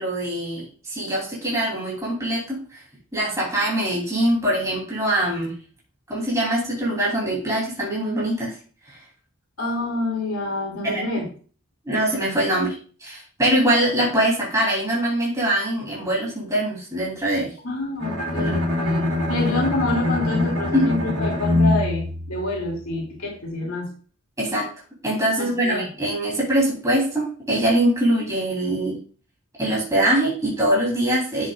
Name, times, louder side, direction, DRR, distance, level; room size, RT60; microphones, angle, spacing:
voice 1, 0.0-2.8 3.1-5.5 6.1-8.6 8.9-9.0 10.8-11.0 11.8-12.7 13.0-17.5 18.4-18.6 20.7-20.9 24.4-24.7 25.0-29.0 29.6-31.5, right 1 dB, 15° right, -6 dB, 3.1 m, -23 dB
voice 2, 9.6-11.3 17.6-23.9 25.4-25.9, left 2 dB, 70° left, -2 dB, 2.5 m, -27 dB
Bowed string instrument, 18.0-23.0, left 1 dB, 90° right, 3.7 m, -24 dB
10.5 x 7.5 x 2.4 m, 0.40 s
head